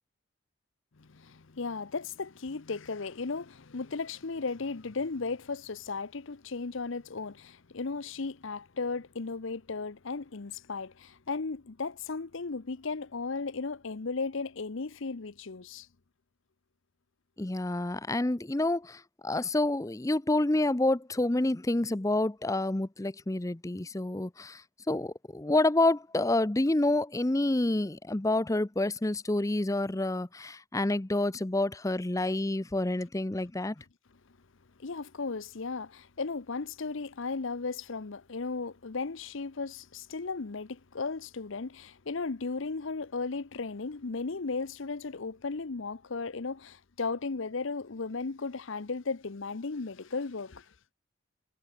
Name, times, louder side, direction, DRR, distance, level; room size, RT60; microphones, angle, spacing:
voice 1, 1.0-15.9 34.8-50.7, left 4 dB, 65° left, 0.8 m, -35 dB
voice 2, 17.4-33.8, left 2 dB, 15° left, 0.5 m, -28 dB
head